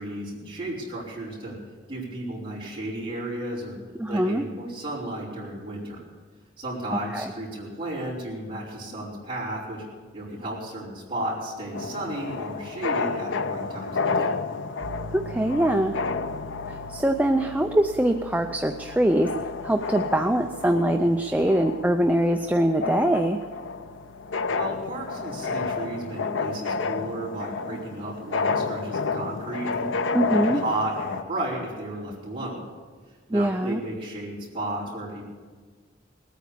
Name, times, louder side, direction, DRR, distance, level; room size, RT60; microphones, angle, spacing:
voice 1, 0.0-1.6 1.9-3.8 4.1-6.0 6.6-9.8 10.1-14.3 24.5-32.6 33.3-35.2, right 1 dB, 30° right, -7 dB, 4.9 m, -33 dB
voice 2, 4.0-4.4 7.1-7.3 15.1-16.0 16.7-19.3 19.6-23.4 30.1-30.6 33.3-33.8, right 1 dB, 10° right, 5 dB, 0.5 m, -23 dB
sound 1, 11.7-31.2, left 4 dB, 80° left, 0.6 m, -31 dB
Piano, 14.8-25.6, equal, 70° right, 0.8 m, -46 dB
19.5 x 9.3 x 6.9 m, 1.5 s
head